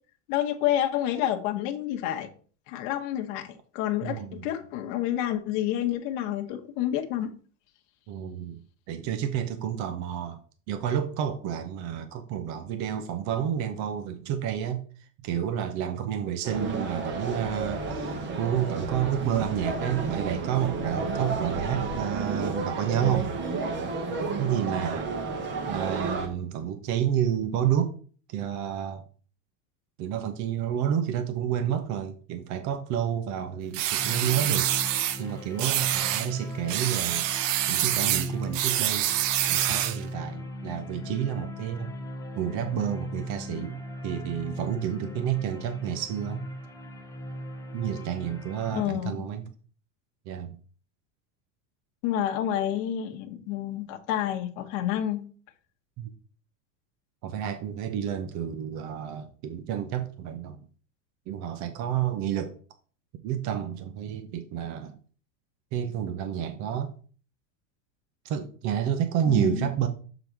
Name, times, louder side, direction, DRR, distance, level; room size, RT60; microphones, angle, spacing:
voice 1, 0.3-2.3 2.7-7.3 48.7-49.3 52.0-55.2 69.3-69.7, left 11 dB, 55° left, 1.0 m, -29 dB
voice 2, 4.0-4.5 8.1-10.4 10.7-14.8 15.2-23.3 24.4-25.1 25.7-28.0 28.3-29.0 30.0-34.7 35.2-39.1 39.5-41.9 42.3-46.4 47.7-49.5 50.3-50.6 56.0-56.1 57.2-60.7 61.3-62.6 63.2-65.0 65.7-66.9 68.2-69.9, right 9 dB, 45° right, 0.8 m, -30 dB
sound 1, 16.4-26.3, right 3 dB, 30° right, 1.1 m, -31 dB
sound 2, 33.7-35.2 35.6-36.3 36.7-40.0, right 12 dB, 75° right, 0.8 m, -26 dB
sound 3, 34.0-48.8, equal, 10° left, 0.6 m, -38 dB
7.0 x 4.0 x 4.6 m
supercardioid pair, 150°, 38 cm